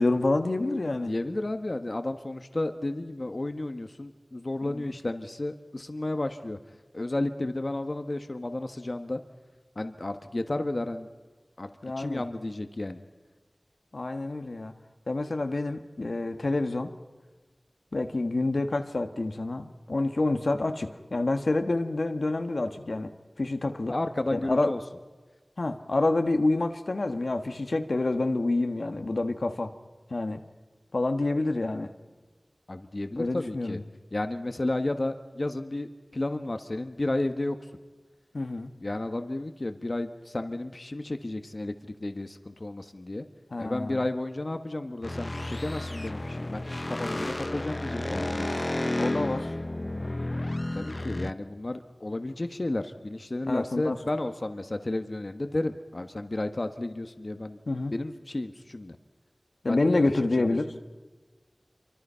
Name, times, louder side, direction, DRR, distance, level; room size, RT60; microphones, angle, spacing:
voice 1, 0.0-1.1 4.6-4.9 11.8-12.2 13.9-14.7 15.1-16.9 17.9-23.1 23.4-23.9 24.3-24.7 25.6-29.7 30.1-30.4 30.9-31.9 33.2-33.8 38.3-38.7 43.5-44.0 49.0-49.5 53.5-54.0 57.7-57.9 59.6-60.8, left 2 dB, 90° left, 6 dB, 1.5 m, -28 dB
voice 2, 1.0-6.6 6.9-9.2 9.7-11.1 11.6-11.7 12.0-13.0 23.9-24.8 32.7-33.8 34.1-37.6 38.8-43.2 43.6-48.5 50.7-57.6 57.9-59.0 59.7-60.0, left 2 dB, 55° left, 8 dB, 1.4 m, -32 dB
sound 1, 45.0-51.3, left 1 dB, 40° left, 0.8 m, -32 dB
27.0 x 24.5 x 5.7 m, 1.3 s
wide cardioid pair, 45°, 0 cm